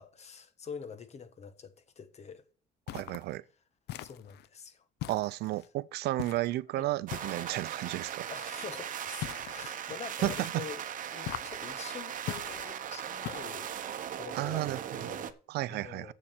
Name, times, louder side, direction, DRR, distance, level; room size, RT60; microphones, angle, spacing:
voice 1, 0.0-2.4 4.0-4.8 6.8-6.9 8.3-10.8 11.1-13.8 14.1-15.4 15.7-16.1, left 6 dB, 40° left, 1.4 m, -45 dB
sound 1, 2.9-3.3 3.9-4.5 5.0-5.7 6.2-6.6 7.1-7.7 9.2-9.7 10.2-10.7 11.2-11.7 12.3-12.7 13.2-13.7, left 14 dB, 75° left, 0.6 m, -41 dB
voice 2, 2.9-3.4 5.1-8.3 10.2-10.6 14.3-15.2 15.5-16.1, right 17 dB, 75° right, 0.5 m, -33 dB
sound 2, 7.1-15.3, right 9 dB, 50° right, 0.9 m, -39 dB
7.6 x 7.1 x 7.7 m
cardioid pair, 110°, 17 cm